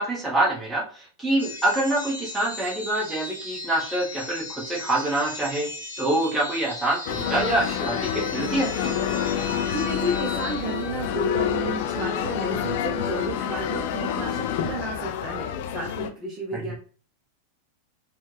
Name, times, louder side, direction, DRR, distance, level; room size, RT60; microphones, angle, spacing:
voice 1, 0.0-5.7 6.0-8.9, right 1 dB, 10° right, -4 dB, 1.5 m, -25 dB
sound 1, 1.4-11.2, left 2 dB, 80° left, 0.9 m, -37 dB
sound 2, 7.1-16.1, left 9 dB, 50° left, 0.4 m, -28 dB
voice 2, 9.7-16.7, right 2 dB, 25° right, -4 dB, 0.9 m, -32 dB
4.0 x 2.5 x 3.3 m, 0.40 s
figure-of-eight pair, 90°, 0 cm